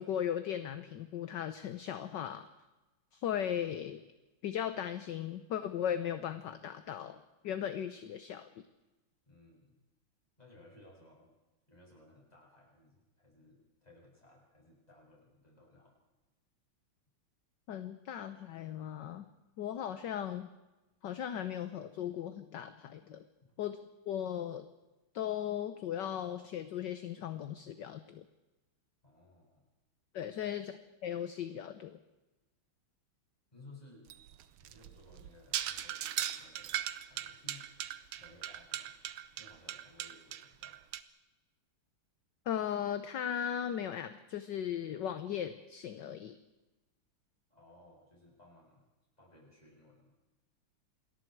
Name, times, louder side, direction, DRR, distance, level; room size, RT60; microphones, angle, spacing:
voice 1, 0.0-2.4 3.1-4.0 4.4-8.6 17.7-19.2 19.6-20.5 21.0-23.2 23.6-23.8 24.1-24.7 25.1-28.2 30.1-30.7 31.0-32.0 42.5-46.4, left 9 dB, 60° left, 10 dB, 1.4 m, -37 dB
voice 2, 9.3-9.8 10.4-11.3 11.7-15.9 23.4-23.6 29.0-29.6 30.2-30.5 33.5-34.3 34.6-37.7 38.2-38.9 39.3-40.8 47.5-48.9 49.2-50.1, left 2 dB, 15° left, -3 dB, 7.9 m, -59 dB
sound 1, 34.1-41.0, right 11 dB, 90° right, 1.8 m, -39 dB
28.0 x 21.5 x 4.7 m, 1.1 s
omnidirectional pair, 2.4 m